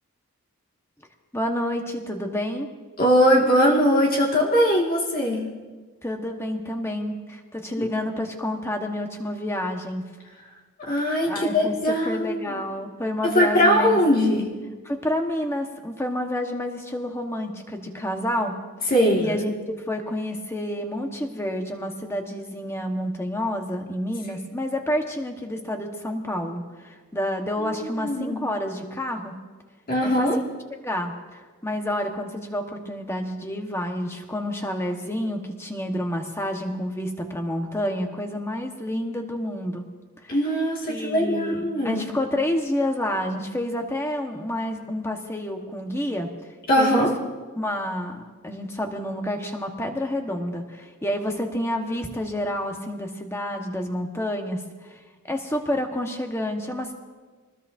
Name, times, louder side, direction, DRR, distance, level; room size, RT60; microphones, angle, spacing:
voice 1, 1.3-2.7 6.0-10.0 11.2-11.7 12.0-14.0 14.8-18.6 19.2-29.3 30.0-30.3 30.8-39.8 40.2-40.3 40.9-46.3 46.8-47.0 47.6-54.6 54.8-55.0 55.2-56.9, left 1 dB, 10° left, 3 dB, 1.3 m, -29 dB
voice 2, 3.0-5.4 7.8-7.9 10.8-12.6 13.2-14.5 18.9-19.4 27.6-28.4 29.9-30.4 40.3-42.0 46.7-47.1, equal, 40° left, -2 dB, 2.2 m, -21 dB
25.0 x 20.0 x 2.7 m, 1.4 s
head